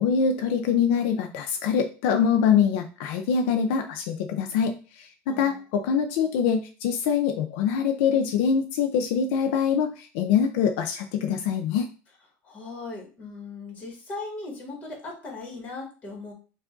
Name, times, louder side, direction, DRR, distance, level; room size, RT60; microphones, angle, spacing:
voice 1, 0.0-11.9, left 7 dB, 75° left, 5 dB, 0.5 m, -24 dB
voice 2, 5.3-5.6 12.4-16.3, left 3 dB, 25° left, 0 dB, 1.5 m, -38 dB
4.8 x 2.5 x 3.8 m, 0.35 s
cardioid pair, 175°, 6 cm